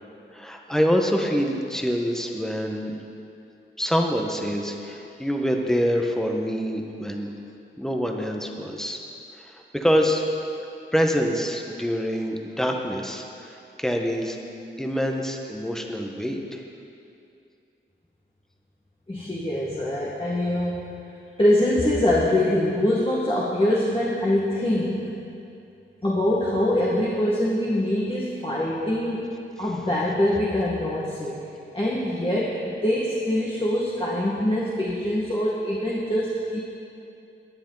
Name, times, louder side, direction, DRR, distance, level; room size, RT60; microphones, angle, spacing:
voice 1, 0.3-2.9 3.8-7.3 7.8-9.0 9.3-10.2 10.9-14.4 14.8-16.6, equal, ahead, 2 dB, 1.3 m, -25 dB
voice 2, 19.1-20.9 21.4-25.2 26.0-29.3 29.6-31.4 31.7-36.6, left 1 dB, 25° left, -6 dB, 1.7 m, -24 dB
17.5 x 10.0 x 4.0 m, 2.6 s
wide cardioid pair, 85°, 20 cm